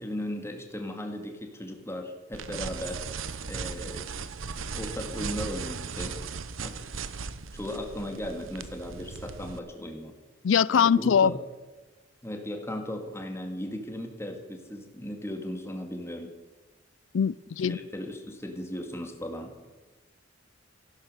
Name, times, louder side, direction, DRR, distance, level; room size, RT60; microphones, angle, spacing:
voice 1, 0.0-3.0 3.5-4.1 4.7-6.2 6.6-6.8 7.5-10.2 10.7-11.4 12.2-16.4 17.6-19.6, equal, 15° left, 4 dB, 2.1 m, -37 dB
sound 1, 2.3-9.6, right 5 dB, 90° right, 0.9 m, -37 dB
voice 2, 10.4-11.3 17.1-17.8, left 7 dB, 70° left, 22 dB, 0.4 m, -22 dB
15.5 x 12.0 x 6.7 m, 1.2 s
head